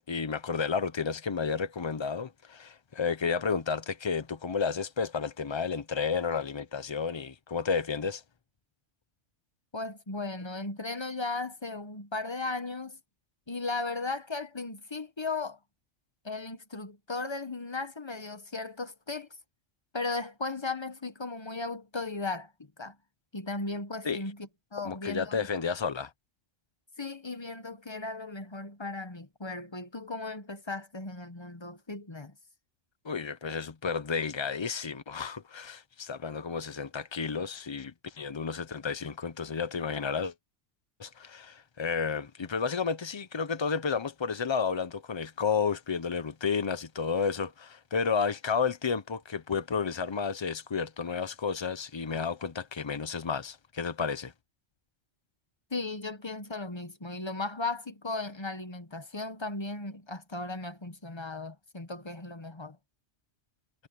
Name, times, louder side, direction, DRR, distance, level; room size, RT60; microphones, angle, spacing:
voice 1, 0.1-8.2 24.0-24.2 24.8-26.1 33.0-40.3 41.0-54.3, left 5 dB, 40° left, 0.4 m, -31 dB
voice 2, 9.7-13.0 13.5-15.6 16.2-19.3 19.9-22.5 22.8-23.0 23.3-25.5 27.0-32.3 55.7-62.8, left 3 dB, 25° left, 1.2 m, -36 dB
omnidirectional pair, 1.3 m